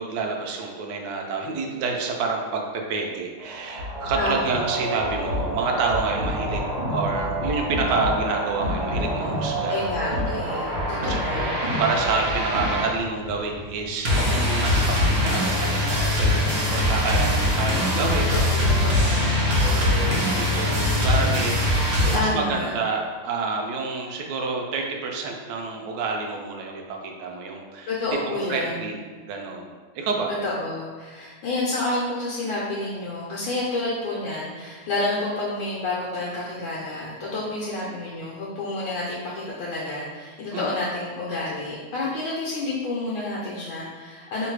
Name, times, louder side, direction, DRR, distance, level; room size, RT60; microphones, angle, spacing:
voice 1, 0.0-2.6 2.9-6.6 6.9-9.7 10.3-10.4 11.0-18.4 19.6-21.6 21.9-28.0 28.3-28.9 29.2-30.3 40.5-40.7, right 4 dB, 75° right, 1 dB, 1.0 m, -28 dB
sound 1, 3.4-22.2, left 1 dB, 55° right, 0.6 m, -24 dB
voice 2, 4.2-4.6 9.7-11.6 18.3-19.4 22.1-22.7 27.9-29.0 30.4-44.5, left 2 dB, 70° left, -5 dB, 1.4 m, -29 dB
3.2 x 3.1 x 4.6 m, 1.5 s
omnidirectional pair, 2.4 m